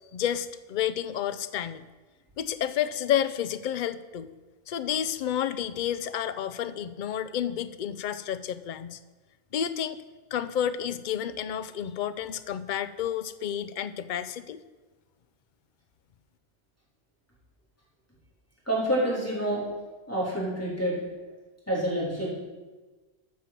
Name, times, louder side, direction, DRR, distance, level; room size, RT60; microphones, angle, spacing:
voice 1, 0.1-1.8 2.4-4.3 4.7-9.0 9.5-10.0 10.3-14.6, left 9 dB, 55° left, 13 dB, 0.6 m, -30 dB
voice 2, 18.7-19.7 20.1-21.0 21.7-22.3, right 1 dB, 10° left, -6 dB, 3.7 m, -27 dB
13.0 x 6.2 x 5.9 m, 1.3 s
omnidirectional pair, 1.2 m